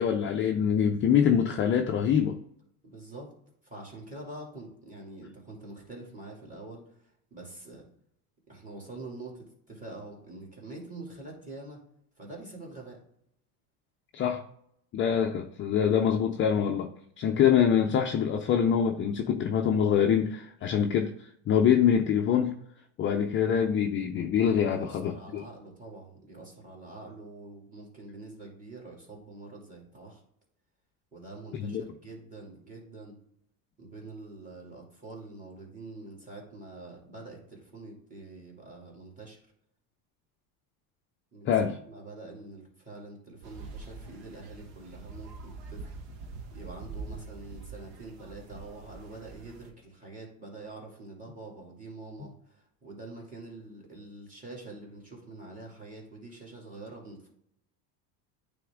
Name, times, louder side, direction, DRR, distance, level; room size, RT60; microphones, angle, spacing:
voice 1, 0.0-2.4 14.1-14.4 14.9-16.9 17.2-22.5 23.0-25.4 31.6-31.8 41.5-41.8, left 8 dB, 30° left, 0.4 m, -25 dB
voice 2, 2.8-3.3 3.6-7.9 8.5-11.8 12.2-13.0 24.7-30.2 31.1-33.2 33.8-39.4 41.3-41.5 41.9-45.9 46.5-57.3, right 2 dB, 20° right, 2.5 m, -45 dB
sound 1, 43.4-49.7, right 3 dB, 70° right, 1.3 m, -44 dB
9.1 x 3.5 x 3.6 m
supercardioid pair, 135°, 43 cm